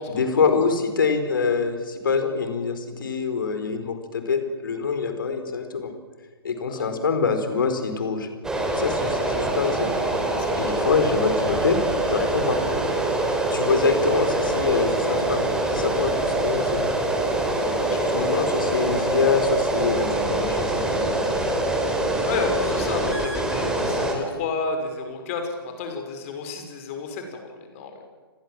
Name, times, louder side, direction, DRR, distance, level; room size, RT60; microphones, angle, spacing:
voice 1, 0.1-6.0 6.4-8.3 8.7-9.9 10.5-12.6 13.5-16.8 18.1-21.1, left 5 dB, 55° left, 8 dB, 4.5 m, -25 dB
voice 2, 6.7-7.0 10.3-10.7 17.8-18.3 22.2-27.9, left 4 dB, 35° left, 5 dB, 5.9 m, -31 dB
sound 1, 8.4-24.2, right 2 dB, 5° right, 3.9 m, -24 dB
30.0 x 21.0 x 7.6 m, 1.5 s
figure-of-eight pair, 125°, 13 cm